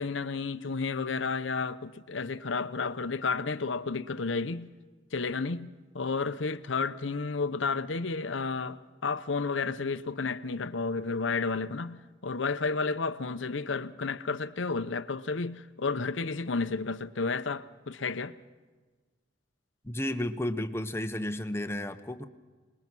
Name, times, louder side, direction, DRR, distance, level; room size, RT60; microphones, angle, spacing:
voice 1, 0.0-4.7 5.1-5.7 5.9-18.4, left 4 dB, 80° left, 0.8 m, -32 dB
voice 2, 19.8-22.3, left 1 dB, 15° left, 0.8 m, -32 dB
26.5 x 20.5 x 6.1 m
head